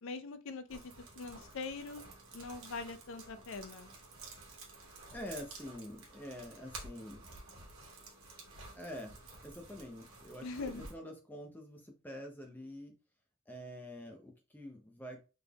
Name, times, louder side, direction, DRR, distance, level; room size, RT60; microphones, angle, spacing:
voice 1, 0.0-2.0 2.3-3.9 10.4-10.9, left 4 dB, 60° left, 10 dB, 0.4 m, -43 dB
sound 1, 0.7-10.9, right 3 dB, 75° right, 1.2 m, -52 dB
voice 2, 5.1-7.2 8.7-12.9 13.5-15.2, equal, 10° left, 3 dB, 0.6 m, -46 dB
3.9 x 3.4 x 2.3 m, 0.32 s
head